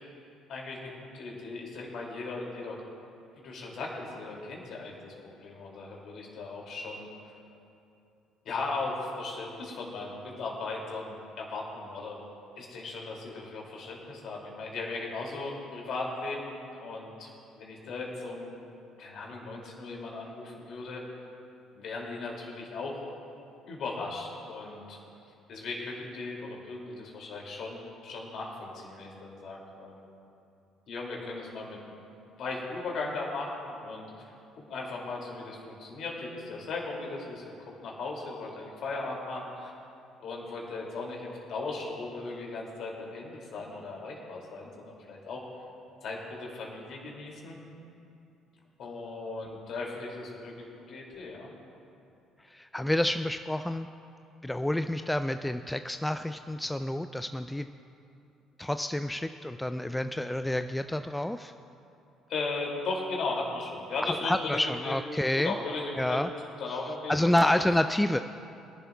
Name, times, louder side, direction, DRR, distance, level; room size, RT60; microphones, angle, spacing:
voice 1, 0.5-2.8 3.3-7.1 8.4-12.2 12.5-17.3 17.5-18.5 19.0-21.0 21.7-23.0 23.7-25.0 25.5-30.1 30.9-31.8 32.3-39.7 40.2-45.4 46.0-47.6 48.8-51.5 62.3-65.0 65.3-66.2 66.6-67.5, left 3 dB, 60° left, -2 dB, 2.5 m, -37 dB
voice 2, 52.5-53.9 54.4-57.7 58.6-61.5 64.0-65.5 66.0-66.3 67.1-68.2, left 1 dB, 10° left, 9 dB, 0.3 m, -28 dB
22.0 x 11.0 x 2.3 m, 2.7 s
hypercardioid pair, 50°, 0 cm